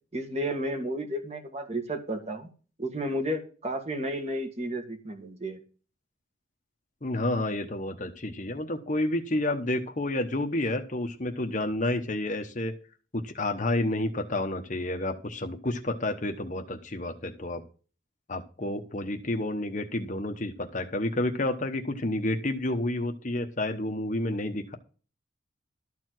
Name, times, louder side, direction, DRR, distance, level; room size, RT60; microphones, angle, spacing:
voice 1, 0.1-2.5 2.8-5.6, right 1 dB, 30° right, 5 dB, 1.8 m, -32 dB
voice 2, 7.0-12.7 13.1-17.6 18.3-24.8, left 1 dB, 40° left, 5 dB, 1.1 m, -30 dB
13.0 x 4.6 x 7.7 m, 0.37 s
head